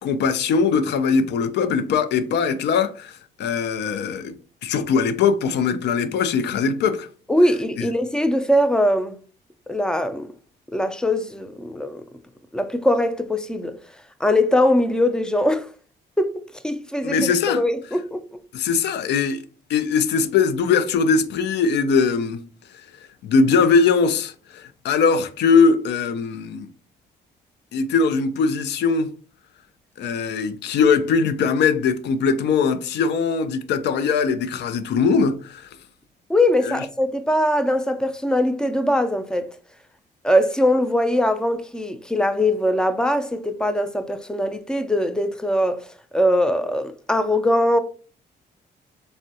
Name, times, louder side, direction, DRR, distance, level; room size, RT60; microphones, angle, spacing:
voice 1, 0.0-4.4 4.6-7.1 17.0-17.6 18.5-19.4 19.7-22.4 23.2-26.7 27.7-29.1 30.0-35.7 36.7-36.8, left 5 dB, 75° left, 0.4 m, -21 dB
voice 2, 7.3-9.2 9.7-10.3 10.7-12.0 12.5-13.8 14.2-15.7 16.2-18.4 36.3-39.6 40.2-47.8, left 1 dB, 5° left, 0.4 m, -21 dB
3.5 x 2.1 x 2.6 m
cardioid pair, 75°, 18 cm